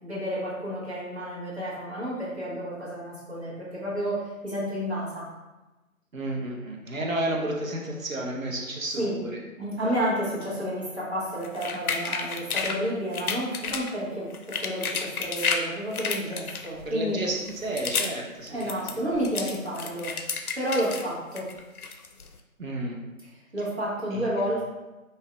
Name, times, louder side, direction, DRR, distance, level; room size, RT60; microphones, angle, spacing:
voice 1, 0.0-5.3 9.0-9.2 9.6-17.2 18.5-20.2 20.5-21.5 23.5-24.7, equal, 50° right, -8 dB, 1.3 m, -30 dB
voice 2, 6.1-9.4 16.8-19.0 22.6-23.0 24.1-24.5, right 1 dB, 65° right, -1 dB, 0.8 m, -32 dB
sound 1, 11.4-12.8 13.1-13.9 14.3-15.7 15.9-16.9 17.4-18.2 18.5-21.0 21.4-22.3, left 5 dB, 85° left, 0.5 m, -31 dB
3.7 x 2.7 x 2.2 m, 1.1 s
figure-of-eight pair, 165°, 42 cm